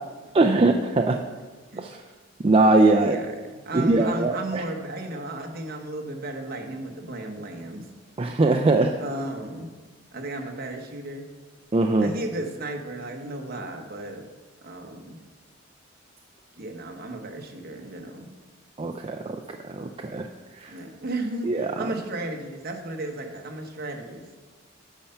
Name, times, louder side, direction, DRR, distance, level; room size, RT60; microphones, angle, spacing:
voice 1, 0.3-1.2 1.8-2.0 2.4-3.2 3.7-4.6 8.2-9.0 11.7-12.1 18.8-19.4 19.7-20.3 20.6-20.7 21.5-21.9, right 2 dB, 30° right, 3 dB, 0.4 m, -21 dB
voice 2, 3.0-7.8 9.0-9.7 10.1-11.3 12.0-14.3 14.6-15.2 16.6-18.3 20.7-24.3, right 2 dB, 50° right, 3 dB, 1.2 m, -34 dB
8.9 x 5.6 x 5.7 m, 1.4 s
head